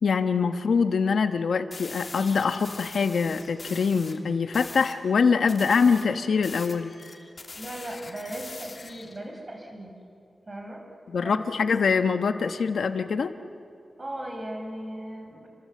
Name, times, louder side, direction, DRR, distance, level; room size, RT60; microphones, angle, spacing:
voice 1, 0.0-6.9 11.1-13.3, left 5 dB, 85° left, 8 dB, 1.3 m, -24 dB
sound 1, 1.7-4.2 4.5-5.0 5.5-9.2, left 3 dB, 40° left, 2.6 m, -43 dB
voice 2, 7.6-9.9 10.5-10.8 11.2-11.8 14.0-15.5, right 1 dB, 25° right, 2 dB, 5.3 m, -37 dB
30.0 x 25.5 x 7.8 m, 2.5 s
wide cardioid pair, 140°, 0 cm